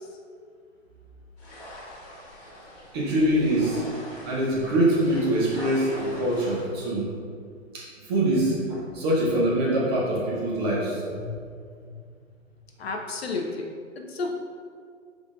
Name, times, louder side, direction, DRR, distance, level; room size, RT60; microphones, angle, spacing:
sound 1, 1.4-6.6, equal, 35° left, 1.3 m, -43 dB
voice 1, 2.9-3.8 4.2-7.1 7.7-11.2, right 1 dB, 20° right, -5 dB, 0.7 m, -24 dB
voice 2, 12.8-13.7 14.1-14.3, left 3 dB, 55° left, 2 dB, 0.5 m, -31 dB
5.2 x 3.6 x 2.4 m, 2.2 s
figure-of-eight pair, 125°, 39 cm